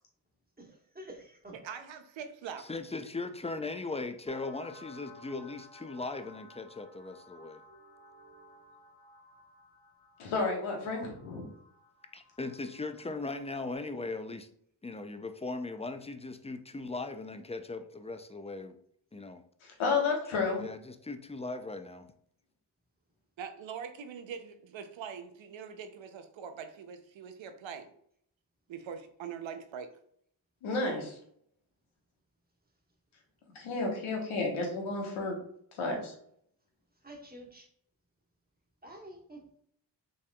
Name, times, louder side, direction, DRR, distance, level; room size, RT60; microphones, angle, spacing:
voice 1, 0.6-1.6 7.5-8.6 37.0-37.7 38.8-39.5, right 1 dB, 20° right, 0 dB, 1.5 m, -50 dB
voice 2, 1.5-2.7 23.4-27.9 28.7-29.9, right 7 dB, 70° right, 8 dB, 0.7 m, -43 dB
voice 3, 2.6-7.6 12.1-14.5 14.8-18.7 19.1-19.4 20.6-22.1, left 3 dB, 15° left, 8 dB, 0.5 m, -39 dB
sound 1, 4.3-13.7, left 2 dB, 45° left, 1.6 m, -56 dB
voice 4, 10.2-11.5 19.6-20.6 30.6-31.2 33.5-35.4 35.8-36.1, left 3 dB, 85° left, 0 dB, 1.3 m, -31 dB
5.3 x 3.4 x 2.3 m, 0.66 s
supercardioid pair, 40°, 47 cm